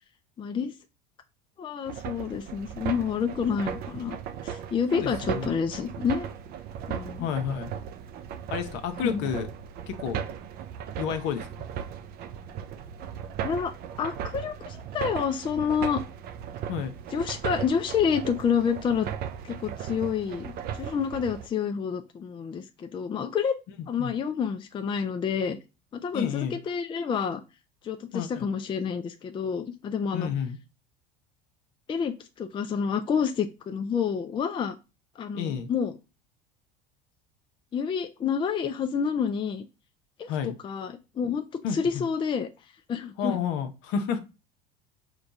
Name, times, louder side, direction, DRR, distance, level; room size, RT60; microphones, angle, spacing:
voice 1, 0.4-0.7 1.6-4.2 4.4-6.3 6.9-7.3 9.0-9.3 13.4-16.0 17.1-19.1 19.4-23.5 23.9-25.6 25.9-27.4 27.8-30.3 31.9-34.8 35.2-35.9 37.7-39.7 40.2-40.3 40.6-41.4 41.7-42.5 42.9-43.4, left 7 dB, 25° left, 7 dB, 0.5 m, -28 dB
sound 1, 1.8-21.5, right 8 dB, 50° right, 0.5 m, -37 dB
voice 2, 4.9-5.5 7.2-7.7 8.5-9.5 9.9-10.2 11.0-11.5 16.7-16.9 24.0-24.1 26.1-26.6 28.1-28.5 30.1-30.6 35.4-35.7 40.3-40.6 41.6-42.1 43.2-44.2, left 7 dB, 60° left, 8 dB, 0.9 m, -30 dB
5.1 x 2.4 x 3.9 m, 0.28 s
supercardioid pair, 105°, 21 cm